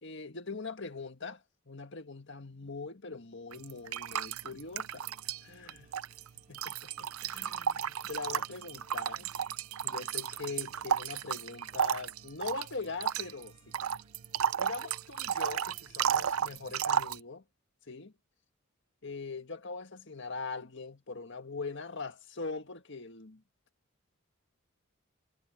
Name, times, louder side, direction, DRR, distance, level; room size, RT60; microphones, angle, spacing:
voice 1, 0.0-1.4 1.7-5.1 5.4-5.9 6.5-9.3 9.8-13.5 14.6-17.4 17.9-18.1 19.0-23.4, left 4 dB, 55° left, 1.8 m, -42 dB
sound 1, 3.5-5.4 5.7-17.2, right 8 dB, 90° right, 0.6 m, -33 dB
sound 2, 4.6-16.5, right 2 dB, 35° right, 3.9 m, -65 dB
head